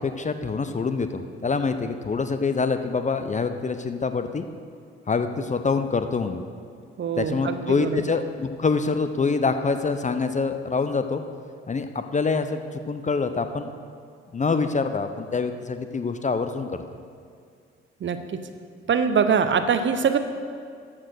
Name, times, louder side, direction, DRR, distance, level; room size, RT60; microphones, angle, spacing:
voice 1, 0.0-4.4 5.1-6.4 7.2-11.2 11.7-12.6 12.9-13.7 14.3-16.8, left 4 dB, 25° left, 9 dB, 0.6 m, -25 dB
voice 2, 7.0-8.0 18.0-18.2 18.9-20.2, right 6 dB, 40° right, 9 dB, 0.7 m, -23 dB
13.0 x 4.4 x 6.4 m, 2.2 s
hypercardioid pair, 45°, 29 cm